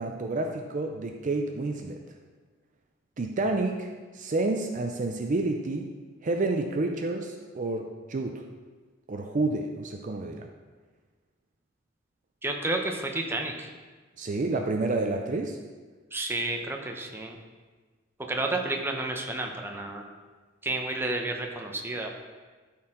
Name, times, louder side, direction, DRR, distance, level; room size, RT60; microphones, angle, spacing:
voice 1, 0.0-2.0 3.2-5.9 6.2-8.4 9.1-10.5 14.2-15.6, right 2 dB, 40° right, 4 dB, 0.5 m, -29 dB
voice 2, 12.4-13.7 16.1-17.4 18.3-20.0 20.6-22.1, right 2 dB, 10° right, 2 dB, 0.7 m, -31 dB
12.5 x 4.4 x 3.7 m, 1.4 s
head